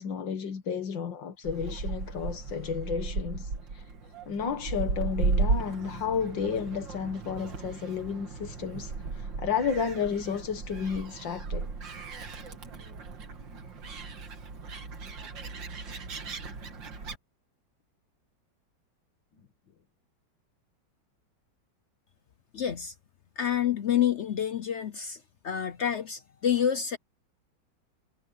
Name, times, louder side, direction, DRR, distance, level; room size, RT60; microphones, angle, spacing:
voice 1, 0.0-3.5 4.3-8.9 9.4-11.7, left 6 dB, 85° left, 2.3 m, -32 dB
Gull seagull, 1.4-17.2, right 4 dB, 85° right, 2.9 m, -35 dB
voice 2, 22.5-22.9 23.4-27.0, left 9 dB, 60° left, 0.7 m, -28 dB
omnidirectional pair, 2.0 m